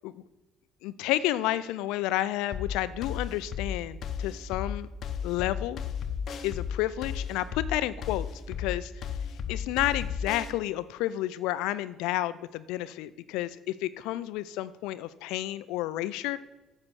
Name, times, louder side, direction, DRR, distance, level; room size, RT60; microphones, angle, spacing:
voice 1, 0.8-4.9 5.2-5.8 6.4-8.9 9.5-16.4, left 15 dB, 80° left, 16 dB, 0.4 m, -31 dB
sound 1, 2.5-10.5, left 7 dB, 55° left, 0.8 m, -34 dB
7.5 x 7.3 x 6.3 m, 1.1 s
supercardioid pair, 70°, 0 cm